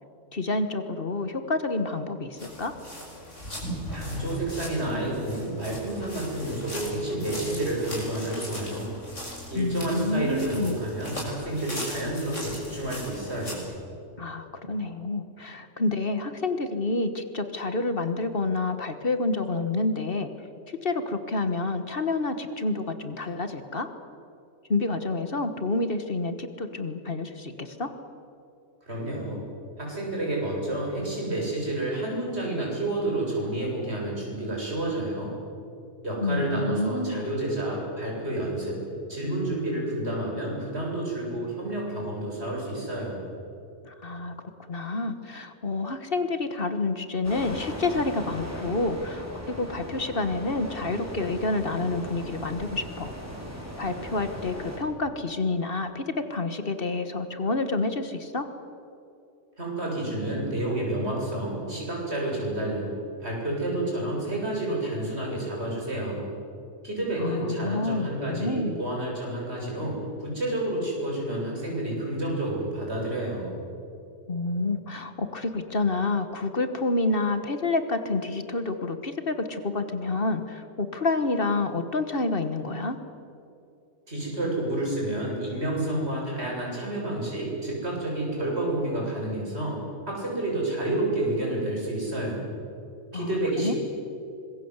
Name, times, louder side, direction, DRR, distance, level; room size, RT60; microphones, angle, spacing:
voice 1, 0.3-2.7 9.5-10.8 14.2-20.3 20.7-23.9 24.7-27.9 36.2-37.3 43.8-53.1 53.8-58.5 67.2-68.8 74.3-83.0 93.1-93.7, left 3 dB, 50° left, 9 dB, 1.6 m, -28 dB
sound 1, 2.4-13.6, equal, 90° left, 7.0 m, -39 dB
voice 2, 3.9-8.9 9.5-13.7 28.9-29.4 29.8-35.3 36.0-38.8 39.1-43.2 59.6-62.9 63.2-66.2 66.8-73.5 84.1-89.8 90.1-92.5 93.1-93.8, right 1 dB, 60° right, -3 dB, 8.0 m, -29 dB
sound 2, 47.2-54.8, equal, 15° right, 5.2 m, -38 dB
25.5 x 22.0 x 8.2 m, 2.6 s
omnidirectional pair, 1.2 m